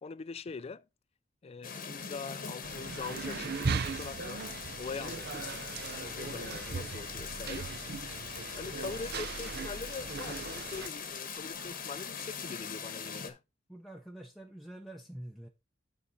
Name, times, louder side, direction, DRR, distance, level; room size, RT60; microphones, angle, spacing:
voice 1, 0.0-0.9 1.4-4.5 4.8-5.7 6.0-7.7 8.6-13.4, left 5 dB, 30° left, 0.3 m, -43 dB
sound 1, 1.6-13.3, left 6 dB, 50° left, 1.1 m, -42 dB
sound 2, 2.6-10.9, right 5 dB, 55° right, 0.6 m, -38 dB
sound 3, 6.5-12.8, right 3 dB, 90° right, 1.9 m, -58 dB
voice 2, 13.7-15.5, right 1 dB, ahead, 0.7 m, -46 dB
9.9 x 4.5 x 4.0 m
head